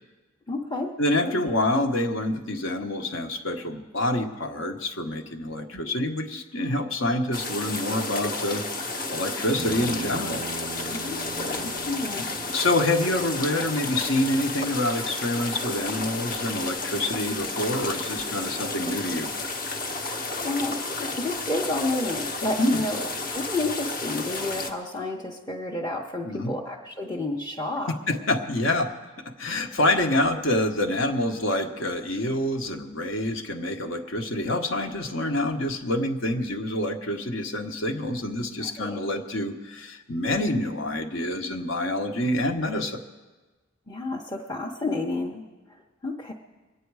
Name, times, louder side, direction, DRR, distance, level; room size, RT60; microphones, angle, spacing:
voice 1, 0.5-0.9 1.2-1.4 5.7-5.9 10.9-12.2 20.2-23.0 23.3-27.9 38.6-39.0 43.9-46.3, left 2 dB, 15° left, -3 dB, 0.8 m, -31 dB
voice 2, 1.0-8.6 9.1-10.4 12.5-19.3 22.6-22.8 26.2-26.5 27.9-28.9 29.2-43.0, left 1 dB, 65° left, 6 dB, 1.1 m, -27 dB
sound 1, 7.3-24.7, left 3 dB, 40° left, 1.0 m, -32 dB
Bass guitar, 9.6-13.9, right 4 dB, 40° right, 0.4 m, -40 dB
22.5 x 9.2 x 4.7 m, 1.3 s
head